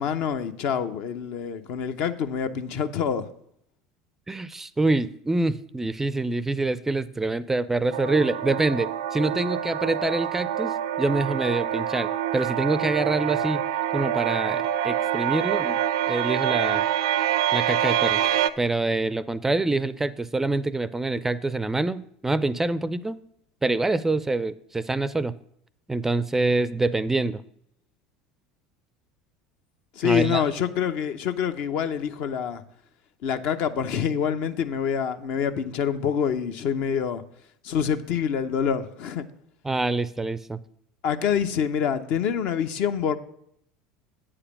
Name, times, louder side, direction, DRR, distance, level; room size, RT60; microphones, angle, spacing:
voice 1, 0.0-3.3 30.0-32.6 33.2-37.2 37.6-39.3 41.0-43.2, left 7 dB, 60° left, 0.7 m, -26 dB
voice 2, 4.3-13.6 13.9-15.8 16.1-16.8 17.5-18.2 18.6-23.2 23.6-25.3 25.9-27.4 30.0-30.4 39.6-40.6, right 2 dB, 10° right, 0.4 m, -26 dB
sound 1, 7.9-18.5, right 10 dB, 75° right, 0.4 m, -26 dB
8.5 x 5.0 x 7.1 m
hypercardioid pair, 80°, 3 cm